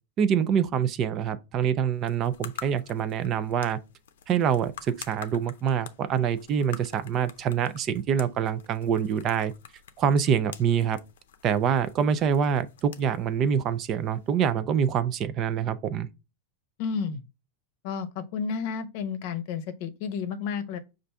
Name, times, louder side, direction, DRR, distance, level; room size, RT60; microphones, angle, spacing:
voice 1, 0.2-3.8 4.3-9.5 10.0-11.0 11.4-16.1, right 8 dB, 30° right, 0.4 m, -25 dB
sound 1, 1.9-14.4, left 9 dB, 90° left, 0.6 m, -48 dB
voice 2, 16.8-17.2 17.8-20.8, left 6 dB, 55° left, 0.7 m, -31 dB
5.4 x 2.5 x 3.3 m
supercardioid pair, 145°, 0 cm